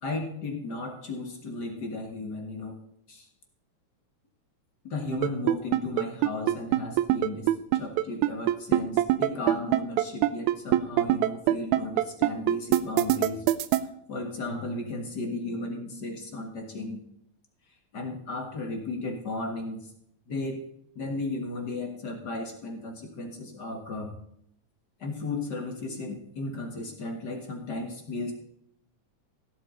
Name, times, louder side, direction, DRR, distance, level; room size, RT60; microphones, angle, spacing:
voice 1, 0.0-2.8 3.1-3.3 4.8-13.5 14.1-17.0 17.9-19.9 20.3-20.6 21.0-24.1 25.0-28.3, left 2 dB, 40° left, 3 dB, 1.8 m, -35 dB
sound 1, 5.1-13.8, right 15 dB, 85° right, 2.0 m, -22 dB
16.0 x 8.3 x 3.9 m, 0.73 s
omnidirectional pair, 3.3 m